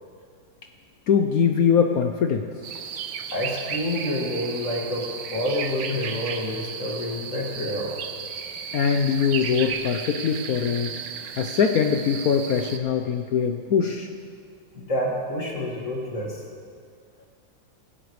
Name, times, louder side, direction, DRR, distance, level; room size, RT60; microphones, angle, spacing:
voice 1, 1.1-2.5 8.7-10.9 11.4-14.1, left 7 dB, 65° left, 5 dB, 0.9 m, -22 dB
sound 1, 2.6-12.8, right 7 dB, 65° right, 1.3 m, -34 dB
voice 2, 3.3-7.9 14.7-16.4, left 1 dB, 40° left, -2 dB, 2.3 m, -28 dB
19.0 x 16.5 x 3.2 m, 2.1 s
omnidirectional pair, 2.1 m